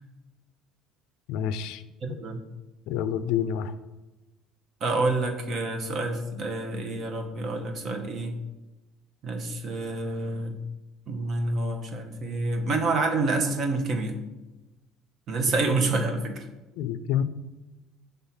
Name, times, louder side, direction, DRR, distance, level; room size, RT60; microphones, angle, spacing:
voice 1, 1.3-1.8 2.1-2.2 2.9-3.7 16.8-17.2, left 9 dB, 75° left, 13 dB, 0.4 m, -28 dB
voice 2, 2.0-2.4 4.8-8.4 9.2-10.6 11.1-14.2 15.3-16.4, right 3 dB, 40° right, 4 dB, 0.9 m, -28 dB
5.6 x 3.5 x 5.7 m, 1.1 s
cardioid pair, 140°, 0 cm